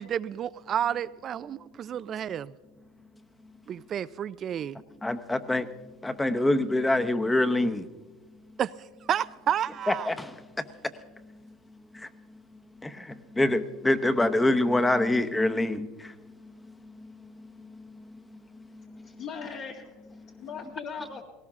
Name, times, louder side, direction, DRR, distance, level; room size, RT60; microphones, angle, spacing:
voice 1, 0.0-2.5 3.7-4.8 8.6-8.7 9.0-10.1, right 9 dB, 40° right, 0.4 m, -30 dB
voice 2, 5.0-5.7 6.0-7.9 9.9-10.3 11.9-12.1 12.8-16.1 16.4-16.5 16.8-19.1, left 1 dB, 10° left, 0.9 m, -26 dB
voice 3, 18.7-21.2, left 6 dB, 60° left, 2.0 m, -40 dB
18.5 x 18.0 x 3.6 m
supercardioid pair, 105°, 0 cm